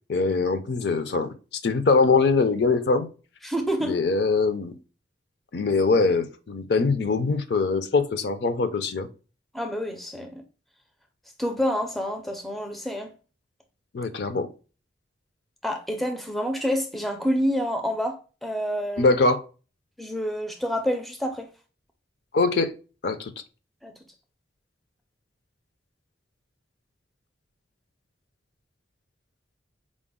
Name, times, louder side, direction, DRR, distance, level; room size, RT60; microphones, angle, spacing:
voice 1, 0.1-1.3 1.6-3.1 3.8-4.8 5.5-9.1 13.9-14.5 19.0-19.4 22.3-22.7 23.0-23.3, left 3 dB, 60° left, 0.5 m, -22 dB
voice 2, 3.4-4.1 9.5-10.4 11.4-13.1 15.6-19.2 20.0-21.5 23.8-23.9, equal, ahead, 0.4 m, -28 dB
4.9 x 2.0 x 3.6 m
head